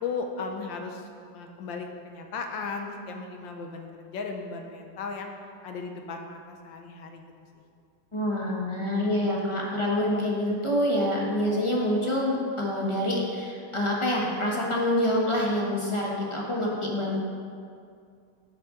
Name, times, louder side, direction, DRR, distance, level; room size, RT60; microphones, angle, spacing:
voice 1, 0.0-5.3 5.6-7.2 7.6-7.7, left 4 dB, 80° left, 4 dB, 1.5 m, -36 dB
voice 2, 8.1-17.2, left 1 dB, 20° left, -3 dB, 0.8 m, -26 dB
10.5 x 6.7 x 3.7 m, 2.3 s
omnidirectional pair, 2.1 m